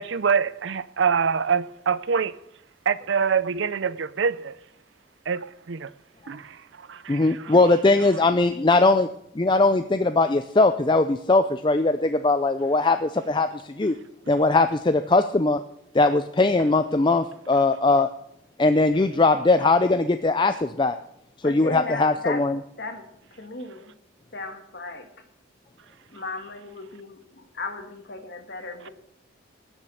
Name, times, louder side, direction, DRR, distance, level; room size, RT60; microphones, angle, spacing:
voice 1, 0.0-2.4 2.9-4.6 5.3-5.9 6.3-7.5, right 6 dB, 60° right, 0.5 m, -25 dB
voice 2, 7.1-9.1 9.4-13.9 14.3-15.6 15.9-18.1 18.6-21.0 21.4-22.6, left 3 dB, 25° left, 0.4 m, -20 dB
voice 3, 21.4-22.5 22.8-23.9 24.3-25.3 26.1-28.9, left 3 dB, 55° left, 1.9 m, -36 dB
19.5 x 7.3 x 6.4 m
head